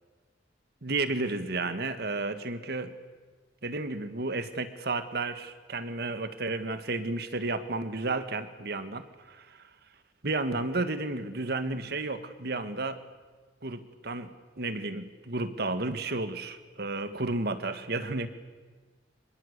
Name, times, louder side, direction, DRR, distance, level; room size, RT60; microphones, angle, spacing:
voice 1, 0.8-2.9 3.6-9.6 10.2-13.0 13.6-14.3 14.6-18.3, right 2 dB, 60° right, 10 dB, 1.8 m, -32 dB
26.0 x 22.0 x 8.3 m, 1.4 s
head